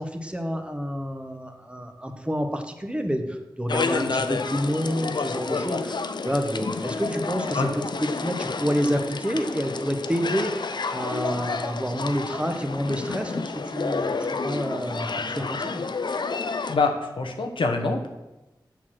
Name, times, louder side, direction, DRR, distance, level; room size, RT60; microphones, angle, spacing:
voice 1, 0.0-6.0 6.2-7.7 8.0-15.8, equal, 15° right, 5 dB, 1.2 m, -28 dB
sound 1, 3.7-16.8, left 4 dB, 65° left, 0.5 m, -30 dB
voice 2, 16.7-18.1, left 3 dB, 85° left, 3 dB, 1.0 m, -25 dB
7.1 x 6.2 x 6.1 m, 1.0 s
wide cardioid pair, 50°, 8 cm